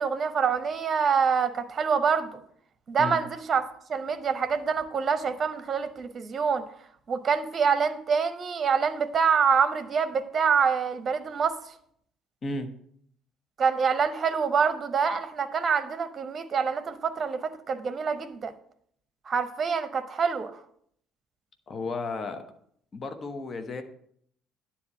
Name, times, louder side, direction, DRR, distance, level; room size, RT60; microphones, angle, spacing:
voice 1, 0.0-2.4 2.9-3.6 3.9-6.6 7.1-11.6 13.6-18.5 19.3-20.6, right 6 dB, 35° right, 11 dB, 0.8 m, -26 dB
voice 2, 21.7-22.4 22.9-23.8, left 3 dB, 35° left, 7 dB, 1.0 m, -33 dB
9.7 x 4.3 x 7.6 m, 0.66 s
figure-of-eight pair, 50°, 0 cm